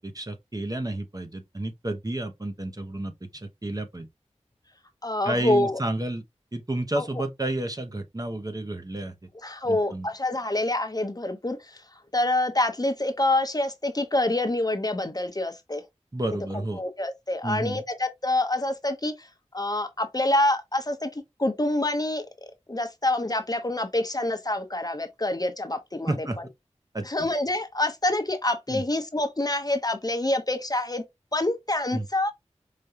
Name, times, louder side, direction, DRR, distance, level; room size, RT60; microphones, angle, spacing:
voice 1, 0.0-4.1 5.2-6.2 6.5-9.1 9.6-10.1 16.1-16.8 17.4-17.8 26.1-26.4 26.9-27.3 28.7-28.8 31.9-32.1, right 1 dB, 30° right, 0.7 m, -31 dB
voice 2, 5.0-5.8 7.0-7.1 9.4-11.8 12.1-15.8 16.7-19.3 19.5-21.1 21.4-22.3 22.7-26.3 27.1-31.0 31.3-32.3, left 1 dB, 30° left, 0.7 m, -26 dB
4.9 x 2.2 x 2.7 m
wide cardioid pair, 45°, 12 cm